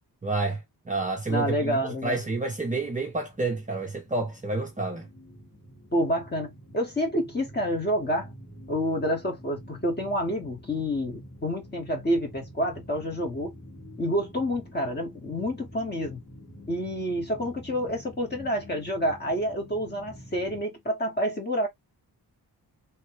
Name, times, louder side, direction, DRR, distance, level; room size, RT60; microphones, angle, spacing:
voice 1, 0.2-5.1, right 3 dB, 20° right, 0.5 m, -29 dB
sound 1, 1.3-20.6, equal, 40° left, 1.9 m, -48 dB
voice 2, 1.3-2.2 5.9-8.3 8.7-13.5 14.0-16.2 16.7-21.7, equal, 25° left, 1.3 m, -28 dB
3.2 x 2.2 x 3.0 m
wide cardioid pair, 170°, 40 cm